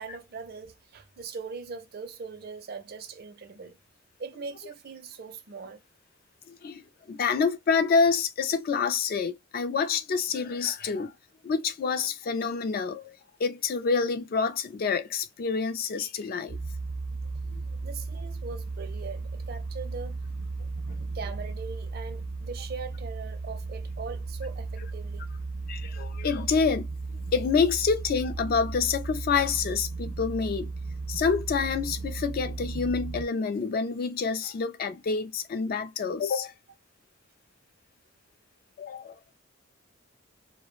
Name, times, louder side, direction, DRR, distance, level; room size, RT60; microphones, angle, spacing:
voice 1, 0.0-3.8 4.2-5.8 17.8-20.2 21.0-25.3, right 5 dB, 50° right, 0.4 m, -40 dB
voice 2, 6.5-11.1 11.4-16.6 25.7-26.9 27.3-30.7 31.1-36.5 38.8-39.2, left 5 dB, 45° left, 0.3 m, -27 dB
sound 1, 16.5-33.3, right 3 dB, 80° right, 0.7 m, -35 dB
2.3 x 2.0 x 3.0 m
head